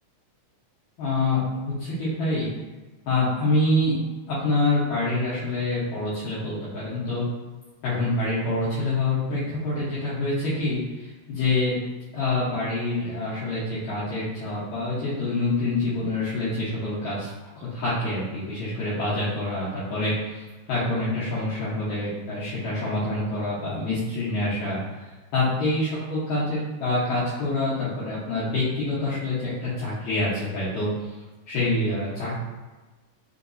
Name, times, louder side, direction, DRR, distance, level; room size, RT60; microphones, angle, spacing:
voice 1, 1.0-2.5 3.1-3.9 4.3-7.2 7.8-11.7 12.1-17.3 17.6-24.8 25.3-30.9 31.5-32.3, left 2 dB, 75° left, -11 dB, 2.3 m, -26 dB
5.1 x 2.9 x 2.6 m, 1.2 s
omnidirectional pair, 3.3 m